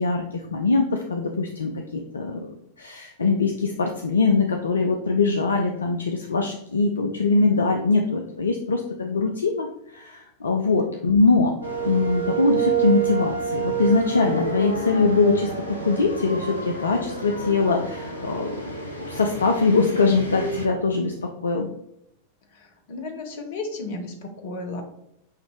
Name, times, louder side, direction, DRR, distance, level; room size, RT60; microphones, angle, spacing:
voice 1, 0.0-11.6 11.8-18.7 19.1-21.7, left 3 dB, 70° left, 3 dB, 0.4 m, -22 dB
sound 1, 11.6-20.7, right 4 dB, 90° right, 0.7 m, -28 dB
voice 2, 22.5-24.8, left 3 dB, 55° left, 4 dB, 0.9 m, -34 dB
6.4 x 2.6 x 3.1 m, 0.80 s
figure-of-eight pair, 90°, 0 cm